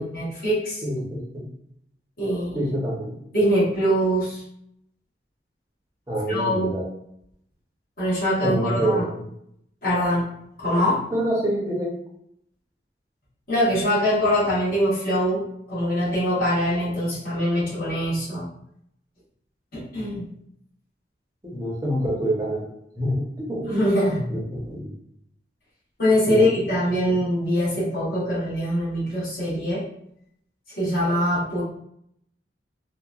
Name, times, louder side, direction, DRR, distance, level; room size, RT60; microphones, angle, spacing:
voice 1, 0.0-0.8 2.2-2.6 3.3-4.4 6.3-6.8 8.0-9.0 9.8-11.0 13.5-18.5 19.7-20.3 23.7-24.2 26.0-29.8 30.8-31.6, equal, 50° left, -9 dB, 1.0 m, -23 dB
voice 2, 0.8-1.5 2.5-3.2 6.1-6.9 8.4-9.2 11.1-12.0 21.4-22.7 23.0-23.8 24.1-24.9 26.3-26.5 27.0-27.2, right 1 dB, 15° right, -4 dB, 0.6 m, -26 dB
2.9 x 2.1 x 2.3 m, 0.73 s
head